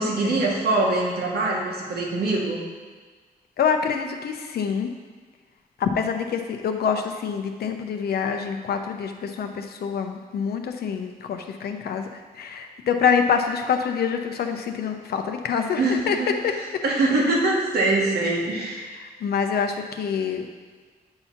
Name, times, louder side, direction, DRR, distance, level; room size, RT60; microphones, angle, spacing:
voice 1, 0.0-2.6 15.8-16.3 16.8-18.9, right 2 dB, 90° right, -2 dB, 1.2 m, -23 dB
voice 2, 3.6-4.9 5.8-16.2 16.4-16.5 17.1-17.4 18.8-20.5, left 6 dB, 80° left, 5 dB, 0.6 m, -26 dB
7.9 x 2.8 x 5.7 m, 1.5 s
cardioid pair, 70°, 16 cm